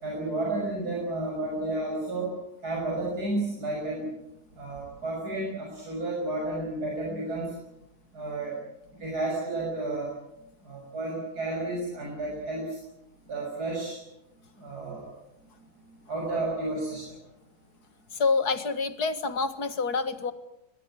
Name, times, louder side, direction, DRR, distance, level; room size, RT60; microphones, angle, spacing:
voice 1, 0.0-2.4 2.6-4.1 4.6-7.5 8.1-8.6 9.0-10.1 10.7-12.8 13.3-14.0 14.6-15.1 16.1-17.1, right 2 dB, 75° right, -2 dB, 7.3 m, -31 dB
voice 2, 18.1-20.3, left 4 dB, 80° left, 11 dB, 2.2 m, -27 dB
23.0 x 22.0 x 8.8 m, 0.89 s
omnidirectional pair, 1.7 m